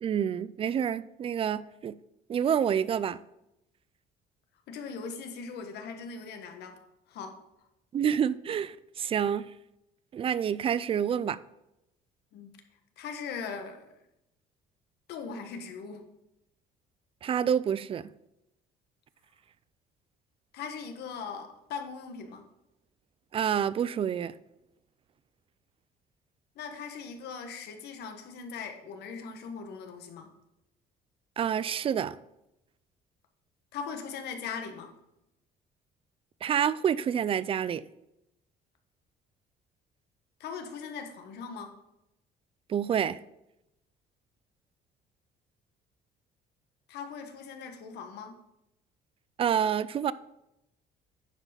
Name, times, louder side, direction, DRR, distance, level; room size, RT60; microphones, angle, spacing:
voice 1, 0.0-2.0 2.3-3.2 7.9-9.5 10.1-11.4 17.2-18.1 23.3-24.4 31.4-32.2 36.4-37.9 42.7-43.2 49.4-50.1, right 8 dB, 35° right, 0.4 m, -28 dB
voice 2, 4.7-6.8 7.1-7.4 12.3-12.5 13.0-13.9 15.1-16.1 20.5-22.4 26.5-30.3 33.7-34.9 40.4-41.7 46.9-48.4, left 5 dB, 75° left, 1.4 m, -40 dB
9.9 x 4.9 x 5.2 m
cardioid pair, 110°, 17 cm